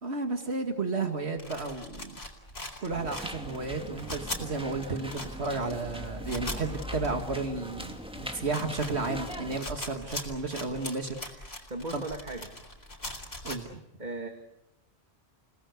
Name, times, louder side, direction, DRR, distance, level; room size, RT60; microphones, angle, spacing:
voice 1, 0.0-2.2 2.8-11.5 11.9-12.0 13.4-13.7, right 3 dB, 85° right, 5 dB, 2.3 m, -33 dB
sound 1, 1.4-7.6 8.0-8.1 8.4-13.6, left 1 dB, 70° left, 4.3 m, -40 dB
sound 2, 2.9-9.6, equal, 5° right, 2.2 m, -40 dB
voice 2, 11.7-12.5 14.0-14.3, right 2 dB, 45° right, 4 dB, 2.3 m, -37 dB
29.5 x 18.5 x 8.2 m, 0.88 s
omnidirectional pair, 1.1 m